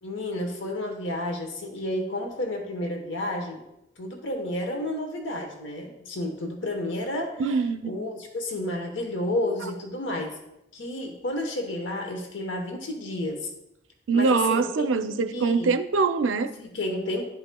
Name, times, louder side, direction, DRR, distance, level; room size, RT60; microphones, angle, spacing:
voice 1, 0.0-3.6 4.0-7.4 7.8-10.4 10.7-13.5 14.1-14.9 15.3-15.8 16.6-17.3, left 1 dB, 80° left, 1.0 m, -31 dB
voice 2, 7.4-8.0 14.1-16.5, right 4 dB, 90° right, 0.5 m, -23 dB
11.5 x 4.8 x 2.2 m
head